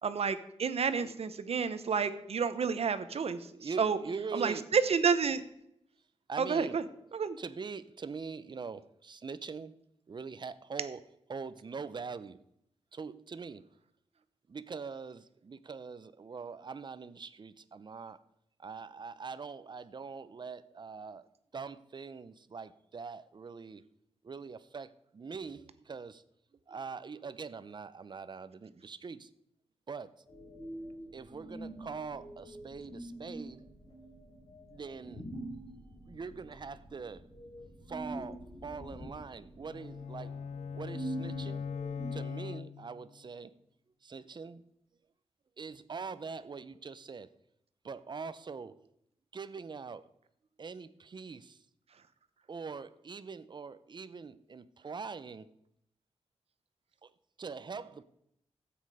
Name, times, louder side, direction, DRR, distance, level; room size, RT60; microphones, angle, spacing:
voice 1, 0.0-3.5 3.8-4.0 4.3-5.4 6.4-6.8 7.1-7.4, right 6 dB, 65° right, 0.9 m, -30 dB
voice 2, 3.5-4.7 6.3-6.8 7.4-9.8 10.1-11.0 11.3-12.4 12.9-13.7 14.5-18.2 18.6-21.3 21.5-23.8 24.2-26.2 26.7-29.3 29.9-30.1 31.1-33.7 34.7-35.3 36.1-37.3 37.9-40.4 40.7-41.6 42.1-43.6 44.0-44.6 45.6-47.3 47.8-48.8 49.3-50.1 50.6-51.6 52.5-55.5 57.0-57.1 57.4-58.0, right 5 dB, 40° right, 0.7 m, -43 dB
sound 1, 30.3-42.1, right 1 dB, 45° left, 5.3 m, -45 dB
sound 2, 39.6-43.2, left 6 dB, 85° left, 0.5 m, -40 dB
13.5 x 8.8 x 4.9 m
wide cardioid pair, 120°, 11 cm